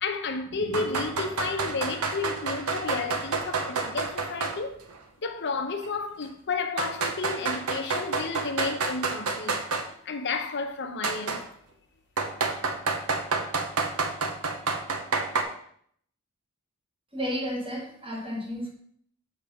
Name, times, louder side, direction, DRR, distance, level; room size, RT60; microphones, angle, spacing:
voice 1, 0.0-4.8 5.2-9.6 10.1-11.4, left 4 dB, 55° left, 0.7 m, -32 dB
sound 1, 0.7-4.6 4.9-5.0 5.8-5.9 6.8-9.9 11.0-11.4 12.2-15.4, right 4 dB, 70° right, 0.8 m, -29 dB
voice 2, 17.1-18.7, equal, 25° right, 1.7 m, -32 dB
6.6 x 3.5 x 5.9 m
head